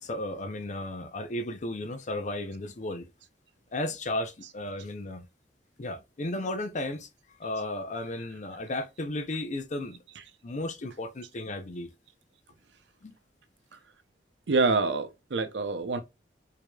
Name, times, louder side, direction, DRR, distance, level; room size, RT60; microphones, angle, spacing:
voice 1, 0.0-3.1 3.7-5.3 5.8-7.1 7.4-10.0 10.4-11.9 13.0-13.1, left 1 dB, 45° left, 0.6 m, -34 dB
voice 2, 14.5-16.0, right 3 dB, 85° right, 0.6 m, -27 dB
4.7 x 2.8 x 2.2 m
head